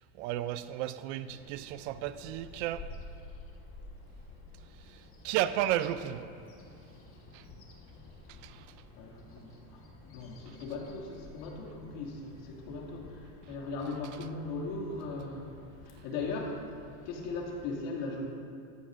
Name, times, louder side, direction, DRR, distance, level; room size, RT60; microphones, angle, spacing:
voice 1, 0.2-2.9 5.2-6.3 7.3-7.4 8.4-8.7, right 13 dB, 60° right, 13 dB, 0.5 m, -33 dB
Bird vocalization bird call bird song, 1.3-17.7, left 2 dB, 30° left, 1.4 m, -52 dB
voice 2, 9.0-15.6 15.8-16.5 17.1-18.3, left 3 dB, 70° left, -1 dB, 2.5 m, -38 dB
14.5 x 14.0 x 2.6 m, 2.4 s
supercardioid pair, 140°, 41 cm